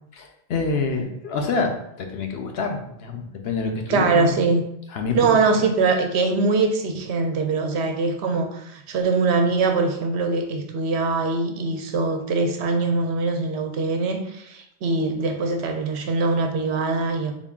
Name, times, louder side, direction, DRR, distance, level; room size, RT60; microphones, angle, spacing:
voice 1, 0.1-1.7 2.0-4.4 4.9-5.4, left 4 dB, 70° left, 4 dB, 0.8 m, -27 dB
voice 2, 3.9-4.6 5.1-17.3, right 3 dB, 75° right, 5 dB, 0.8 m, -22 dB
3.7 x 2.3 x 3.5 m, 0.77 s
omnidirectional pair, 1.2 m